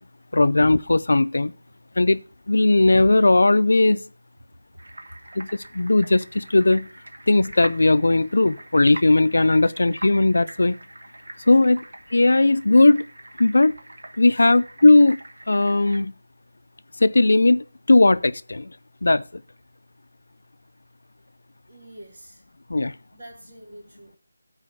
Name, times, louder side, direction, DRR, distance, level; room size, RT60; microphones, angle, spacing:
voice 1, 0.3-1.5 2.0-4.0 5.4-6.9 7.3-10.8 11.5-11.8 12.1-13.0 13.4-13.8 14.2-15.2 15.5-16.1 17.0-18.7 19.0-19.4 22.7-22.9, left 2 dB, 65° left, 0.4 m, -18 dB
sound 1, 4.8-16.0, right 1 dB, 85° right, 1.3 m, -43 dB
voice 2, 21.7-22.4 23.1-24.2, right 1 dB, 40° right, 2.5 m, -46 dB
8.5 x 4.8 x 6.7 m
figure-of-eight pair, 180°, 0 cm